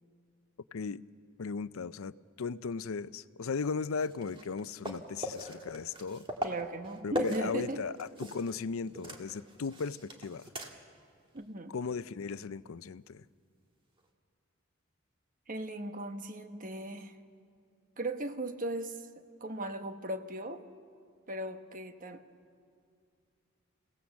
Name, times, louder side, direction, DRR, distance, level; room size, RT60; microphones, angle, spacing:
voice 1, 0.7-1.0 1.4-6.2 7.0-10.5 11.7-13.2, left 5 dB, 90° left, 16 dB, 0.5 m, -37 dB
sound 1, 4.0-8.6 8.8-11.0 11.4-11.5 14.0-14.1, right 1 dB, 25° right, 1.7 m, -40 dB
voice 2, 6.4-7.8 11.3-11.7 15.5-17.2 18.0-19.1 19.4-20.7 21.3-22.2, right 1 dB, 40° right, 7 dB, 1.1 m, -37 dB
29.5 x 17.5 x 7.2 m, 2.3 s
head